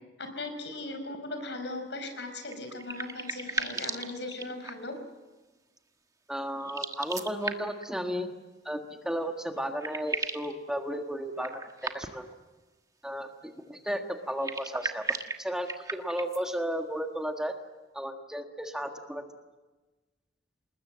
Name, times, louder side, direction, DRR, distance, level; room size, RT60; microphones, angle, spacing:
voice 1, 0.2-4.9, left 2 dB, 85° left, 7 dB, 5.1 m, -38 dB
sound 1, 2.4-5.0 6.6-7.9 9.2-9.3 9.6-10.5 11.4-12.3 14.3-16.4, right 3 dB, 20° right, 1.3 m, -36 dB
voice 2, 6.3-8.3 8.6-12.3 13.0-13.3 13.7-17.5 17.9-19.2, equal, 5° right, 4 dB, 1.5 m, -34 dB
28.0 x 20.0 x 7.5 m, 1.2 s
head